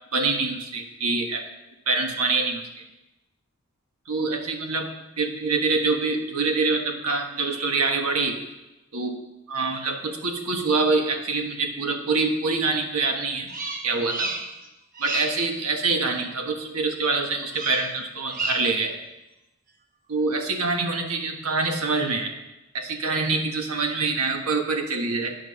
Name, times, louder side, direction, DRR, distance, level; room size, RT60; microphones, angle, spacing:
voice 1, 0.1-1.4 1.9-2.7 4.1-8.4 8.9-9.2 9.5-13.5 13.8-14.3 15.0-19.0 20.1-22.3 22.7-25.4, right 3 dB, 85° right, 4 dB, 1.3 m, -25 dB
Bird vocalization bird call bird song, 13.5-14.7 14.9-15.5 17.5-18.0 18.3-18.8, right 2 dB, 40° right, 0.9 m, -31 dB
9.2 x 6.2 x 6.2 m, 0.99 s
head